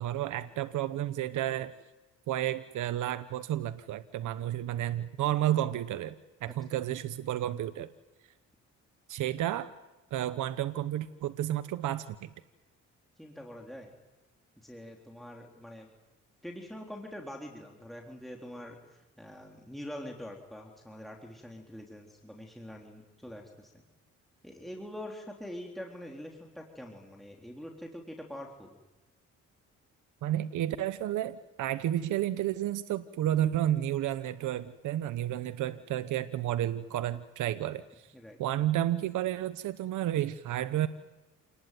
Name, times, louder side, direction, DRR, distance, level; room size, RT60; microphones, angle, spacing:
voice 1, 0.0-1.7 2.3-7.9 9.1-9.7 10.1-12.3 30.2-38.1 38.4-40.9, right 12 dB, 80° right, 12 dB, 1.1 m, -31 dB
voice 2, 6.5-6.8 13.2-13.9 14.6-15.9 16.4-23.8 24.4-28.8 38.1-38.4, left 1 dB, ahead, 0 dB, 3.7 m, -44 dB
28.0 x 19.5 x 9.4 m, 1.1 s
cardioid pair, 90°, 30 cm